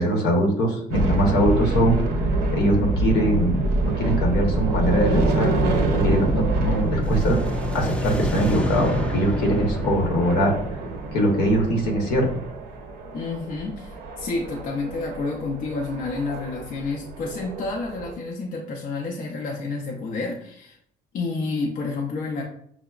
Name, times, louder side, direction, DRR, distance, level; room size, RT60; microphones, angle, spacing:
voice 1, 0.0-2.0 2.5-3.7 4.0-5.5 5.9-7.4 7.7-10.5 11.1-12.3, right 1 dB, 80° left, 1 dB, 1.0 m, -22 dB
sound 1, 0.9-18.1, right 2 dB, 80° right, 0.6 m, -26 dB
sound 2, 6.8-11.9, left 2 dB, 5° left, 0.4 m, -31 dB
voice 2, 13.1-20.8 21.1-22.4, left 3 dB, 55° left, 0 dB, 0.5 m, -29 dB
5.8 x 2.0 x 2.3 m, 0.67 s
cardioid pair, 110°, 17 cm